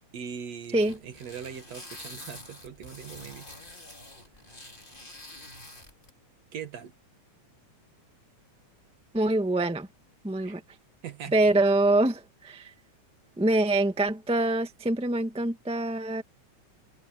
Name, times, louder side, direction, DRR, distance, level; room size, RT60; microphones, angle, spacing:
voice 1, 0.1-3.5 4.7-5.0 6.5-6.9 10.4-10.6 11.0-11.3, right 8 dB, 60° right, 2.7 m, -41 dB
sound 1, 0.8-6.1, left 1 dB, 15° left, 4.0 m, -46 dB
voice 2, 9.1-9.9 10.2-10.6 11.3-12.7 13.4-16.2, right 2 dB, 5° right, 0.5 m, -25 dB
omnidirectional pair, 3.5 m